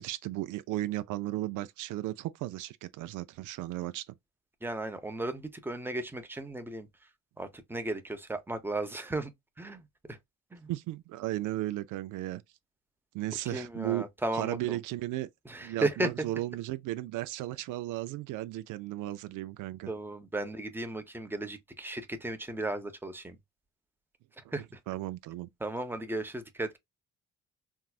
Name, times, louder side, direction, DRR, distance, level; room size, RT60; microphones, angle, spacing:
voice 1, 0.0-4.0 10.7-12.4 13.1-14.0 14.3-15.3 15.6-19.9 24.9-25.5, right 16 dB, 85° right, 0.5 m, -35 dB
voice 2, 4.6-6.9 7.4-9.3 9.6-10.2 10.5-10.7 13.5-14.8 15.5-16.1 19.9-23.4 24.5-24.8 25.6-26.8, right 2 dB, 5° right, 0.8 m, -35 dB
4.6 x 2.0 x 2.3 m
cardioid pair, 90°, 30 cm